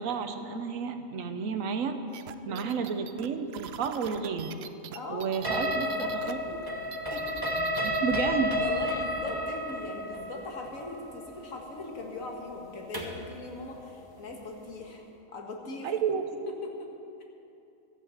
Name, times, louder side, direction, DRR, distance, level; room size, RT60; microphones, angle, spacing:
voice 1, 0.0-2.0 2.5-4.5 5.1-6.4 7.8-8.6 15.8-16.2, right 6 dB, 80° right, 8 dB, 1.2 m, -31 dB
sound 1, 2.1-6.3 6.6-8.1, right 9 dB, 65° right, 0.7 m, -44 dB
voice 2, 4.9-5.3 5.6-6.6 7.1-7.5 7.8-7.9 8.6-15.1 15.3-15.9 16.5-16.9, left 2 dB, 85° left, 1 dB, 2.0 m, -40 dB
sound 2, 5.4-13.3, left 1 dB, 20° right, 1.2 m, -32 dB
13.5 x 8.4 x 7.2 m, 2.7 s
omnidirectional pair, 1.4 m